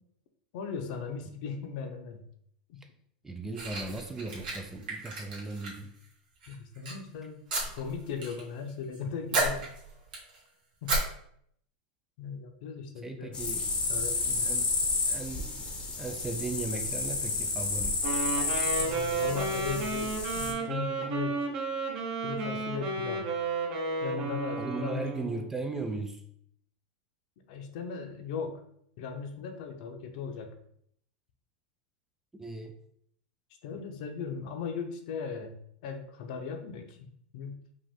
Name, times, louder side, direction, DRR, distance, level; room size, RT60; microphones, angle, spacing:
voice 1, 0.5-2.2 2.7-2.8 6.5-7.5 7.7-9.7 10.8-11.0 12.2-13.4 13.9-14.7 18.3-21.5 22.2-23.3 24.0-25.4 27.5-28.6 29.0-30.6 33.6-37.6, left 5 dB, 60° left, 6 dB, 0.7 m, -38 dB
voice 2, 3.2-6.0 13.0-14.8 15.1-18.0 24.6-26.2 32.3-32.8, right 3 dB, 10° right, 5 dB, 0.3 m, -37 dB
sound 1, 3.5-6.0 6.4-6.9 7.5-8.4 8.7-9.0 9.3-10.4 10.9-11.0, right 2 dB, 80° right, 1.8 m, -33 dB
sound 2, 13.3-20.5, left 3 dB, 20° left, 0.7 m, -31 dB
Wind instrument woodwind instrument, 18.0-25.5, right 3 dB, 55° right, 1.4 m, -32 dB
5.2 x 2.5 x 3.6 m, 0.68 s
supercardioid pair, 150°, 5 cm